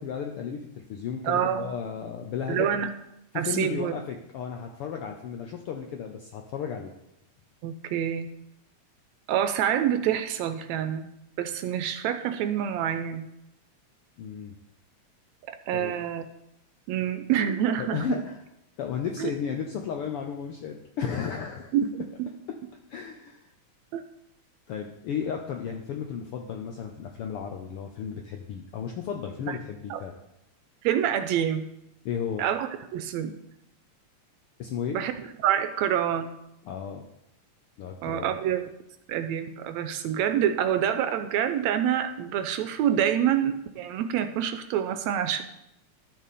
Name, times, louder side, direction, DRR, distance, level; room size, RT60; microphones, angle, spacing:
voice 1, 0.0-2.7 3.3-6.9 14.2-14.5 15.7-15.9 17.8-18.4 18.8-21.9 22.9-23.5 24.7-30.1 32.0-32.4 34.6-35.0 36.6-37.0 37.8-38.3, left 7 dB, 75° left, 3 dB, 1.3 m, -34 dB
voice 2, 1.2-1.7 2.5-2.9 3.4-3.9 7.6-8.3 9.3-11.1 11.4-13.2 15.7-16.3 16.9-18.2 19.2-19.3 21.7-21.9 22.2-22.3 23.9-24.0 29.5-29.6 29.9-30.0 30.8-31.7 32.4-33.3 34.9-35.1 35.4-36.3 38.0-38.6 39.1-45.4, right 9 dB, 80° right, 9 dB, 1.8 m, -27 dB
12.5 x 6.4 x 4.2 m, 0.85 s
omnidirectional pair, 3.4 m